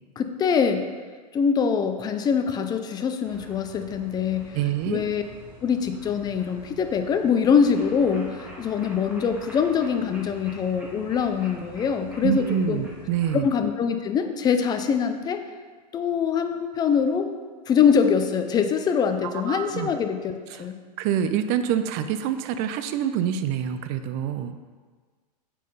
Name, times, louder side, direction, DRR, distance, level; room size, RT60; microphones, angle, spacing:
voice 1, 0.2-0.8 1.3-4.5 4.9-5.2 5.6-12.8 13.4-15.4 15.9-17.3 17.7-20.7, left 6 dB, 20° left, 7 dB, 0.5 m, -23 dB
sound 1, 3.2-13.4, right 1 dB, 5° right, 1.8 m, -45 dB
voice 2, 4.5-5.0 12.2-13.5 19.2-19.9 20.5-20.6 21.0-24.6, right 9 dB, 40° right, 10 dB, 0.5 m, -26 dB
7.4 x 5.7 x 4.0 m, 1.5 s
hypercardioid pair, 125°, 21 cm